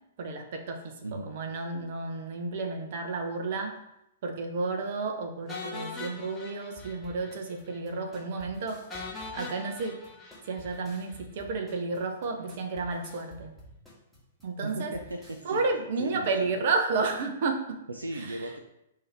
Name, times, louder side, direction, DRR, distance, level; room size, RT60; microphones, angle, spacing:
voice 1, 0.2-3.8 4.2-8.8 9.3-10.0 10.5-13.5 14.4-14.9 15.4-17.8 18.1-18.5, right 3 dB, 45° right, 4 dB, 0.7 m, -31 dB
sound 1, 5.5-7.4 7.7-7.8 8.1-8.2 8.9-11.2, left 3 dB, 15° left, 1.0 m, -41 dB
sound 2, 6.8-15.5, equal, 5° right, 1.4 m, -52 dB
voice 2, 14.6-15.6 16.0-16.5 17.9-18.6, right 1 dB, 75° right, 3 dB, 0.4 m, -36 dB
5.4 x 2.8 x 3.4 m, 0.85 s
figure-of-eight pair, 110°, 0 cm